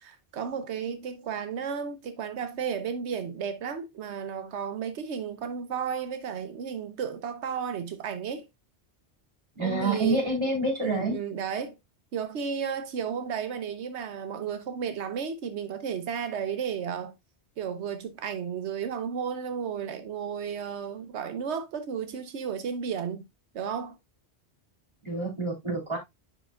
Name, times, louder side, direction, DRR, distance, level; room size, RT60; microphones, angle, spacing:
voice 1, 0.0-8.4 9.6-10.2 10.8-11.7 12.1-17.1 17.6-23.2 23.5-23.9, right 7 dB, 85° right, 1.1 m, -33 dB
voice 2, 9.5-11.2 25.0-26.0, right 2 dB, 25° right, 3.1 m, -27 dB
9.9 x 5.2 x 2.3 m
omnidirectional pair, 1.1 m